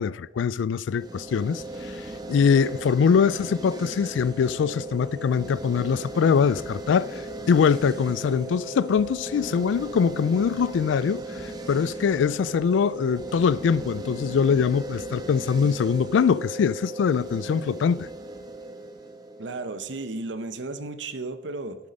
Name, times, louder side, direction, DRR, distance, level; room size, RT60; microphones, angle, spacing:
voice 1, 0.0-18.1, left 6 dB, 85° left, 0.3 m, -23 dB
sound 1, 1.0-20.0, right 2 dB, 20° right, 1.0 m, -37 dB
sound 2, 4.2-16.2, equal, 30° left, 1.1 m, -50 dB
voice 2, 19.4-21.8, right 3 dB, 80° right, 0.8 m, -34 dB
12.0 x 7.1 x 5.2 m
head